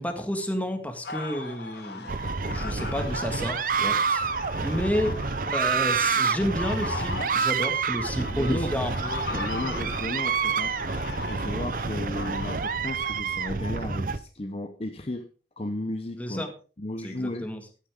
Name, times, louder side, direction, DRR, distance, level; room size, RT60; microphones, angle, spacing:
voice 1, 0.0-2.1 2.5-4.3 4.6-5.2 5.5-9.2 16.2-16.5 17.0-17.6, equal, 10° left, 5 dB, 1.9 m, -31 dB
sound 1, 1.0-13.1, left 3 dB, 70° left, 1.9 m, -38 dB
sound 2, 2.1-14.2, right 5 dB, 50° right, 0.7 m, -28 dB
voice 2, 7.9-8.9 9.2-15.3 15.6-16.5 16.8-17.5, left 1 dB, 35° left, 7 dB, 0.8 m, -34 dB
14.5 x 10.0 x 3.7 m, 0.37 s
head